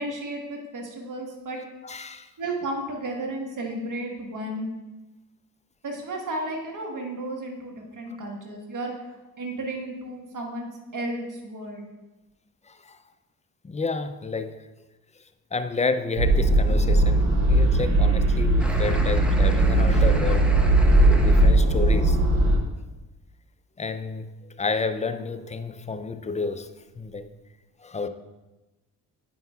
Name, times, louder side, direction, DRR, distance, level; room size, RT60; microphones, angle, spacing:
voice 1, 0.0-1.6 2.4-4.7 5.8-9.1 9.4-11.8, right 1 dB, 50° right, 0 dB, 1.5 m, -33 dB
voice 2, 1.8-2.3 12.7-13.0 13.6-14.6 15.5-20.5 21.1-22.2 23.8-27.3 27.8-28.1, left 4 dB, 20° left, 10 dB, 0.4 m, -30 dB
sound 1, 16.2-22.6, right 1 dB, 85° right, 1.0 m, -19 dB
sound 2, 18.6-21.5, equal, 5° right, 0.9 m, -35 dB
9.2 x 5.3 x 2.3 m, 1.1 s
supercardioid pair, 60°, 41 cm